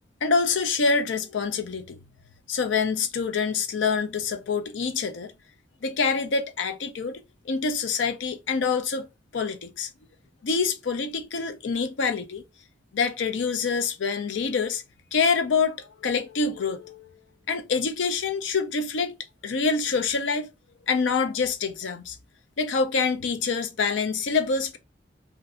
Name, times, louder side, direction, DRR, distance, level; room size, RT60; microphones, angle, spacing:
voice 1, 0.2-2.0 2.5-5.3 5.8-9.1 9.3-9.9 10.4-12.4 12.9-14.8 15.1-17.0 17.5-19.2 19.4-20.5 20.9-22.2 22.6-24.8, left 5 dB, 85° left, 0.5 m, -26 dB
2.5 x 2.2 x 3.6 m
head